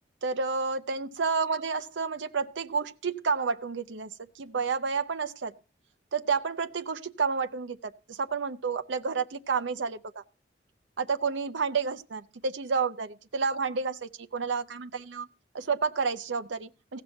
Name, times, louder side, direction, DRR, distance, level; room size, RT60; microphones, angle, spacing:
voice 1, 0.2-5.5 6.1-10.2 11.0-15.3 15.5-17.0, right 5 dB, 80° right, 0.6 m, -30 dB
16.0 x 6.1 x 5.4 m
head